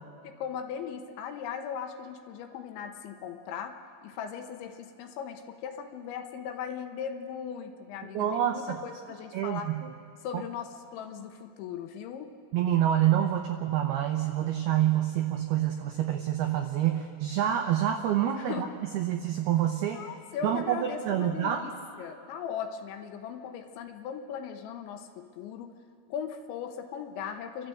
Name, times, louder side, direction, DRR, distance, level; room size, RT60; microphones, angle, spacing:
voice 1, 0.2-3.7 4.0-9.7 10.2-12.3 18.3-18.7 19.8-21.7 22.0-25.7 26.1-27.7, left 8 dB, 75° left, 6 dB, 3.1 m, -38 dB
voice 2, 8.1-8.8 9.3-9.7 10.3-10.4 12.5-18.7 18.9-20.0 20.4-21.7, right 11 dB, 85° right, 4 dB, 2.3 m, -27 dB
29.5 x 12.5 x 7.8 m, 2.2 s
omnidirectional pair, 5.7 m